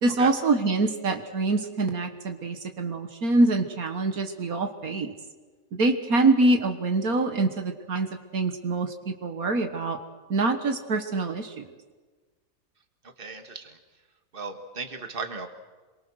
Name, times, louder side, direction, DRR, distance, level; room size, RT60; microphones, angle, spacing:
voice 1, 0.0-5.1 5.7-8.1 8.3-10.0 10.3-11.7, right 2 dB, 75° right, 6 dB, 2.0 m, -25 dB
voice 2, 13.2-13.8 14.3-15.5, right 4 dB, 40° right, 6 dB, 2.2 m, -36 dB
27.5 x 23.5 x 6.4 m, 1.3 s
omnidirectional pair, 1.5 m